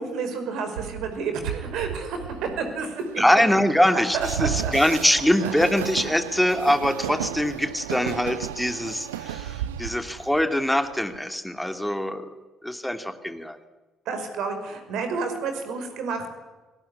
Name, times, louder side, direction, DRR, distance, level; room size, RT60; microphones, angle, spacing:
voice 1, 0.0-3.2 3.9-4.7 5.4-5.5 14.1-16.3, right 5 dB, 60° right, 7 dB, 5.3 m, -30 dB
Train, 0.8-11.2, right 10 dB, 75° right, 0.9 m, -34 dB
voice 2, 3.2-12.3 12.6-13.6, left 1 dB, 5° left, 7 dB, 2.7 m, -23 dB
29.0 x 18.5 x 10.0 m, 1.2 s
figure-of-eight pair, 45°, 0 cm